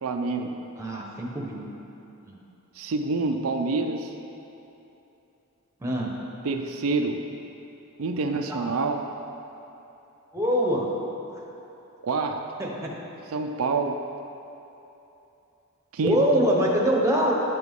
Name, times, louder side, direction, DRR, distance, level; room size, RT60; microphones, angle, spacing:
voice 1, 0.0-0.6 2.7-4.1 6.4-7.3 8.0-9.1 12.0-12.5 13.3-14.0 15.9-16.3, right 3 dB, 75° right, 4 dB, 0.4 m, -27 dB
voice 2, 0.8-1.6 2.3-2.4 5.8-6.1 8.5-8.6 10.3-10.9 12.6-12.9 16.0-17.3, equal, 15° right, -2 dB, 0.9 m, -24 dB
11.0 x 5.9 x 3.6 m, 3.0 s
head